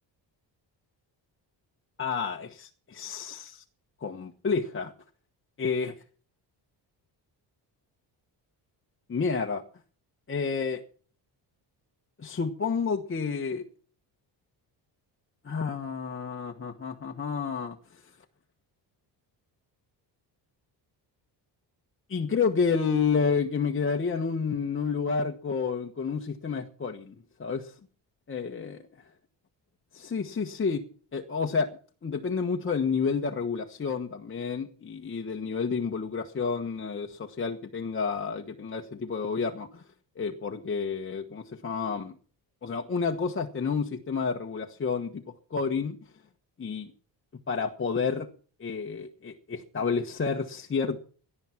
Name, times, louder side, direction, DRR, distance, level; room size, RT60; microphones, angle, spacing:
voice 1, 2.0-3.6 4.0-4.9 5.6-6.0 9.1-9.6 10.3-10.8 12.2-13.6 15.4-18.0 22.1-27.1 27.4-27.7 28.3-28.8 29.9-30.8 31.1-31.7 32.0-39.8 40.2-42.2 42.6-45.2 45.5-46.0 46.6-46.9 47.5-48.3 48.6-51.0, left 5 dB, 30° left, 3 dB, 1.4 m, -30 dB
17.5 x 11.5 x 5.9 m, 0.42 s
cardioid pair, 130°, 43 cm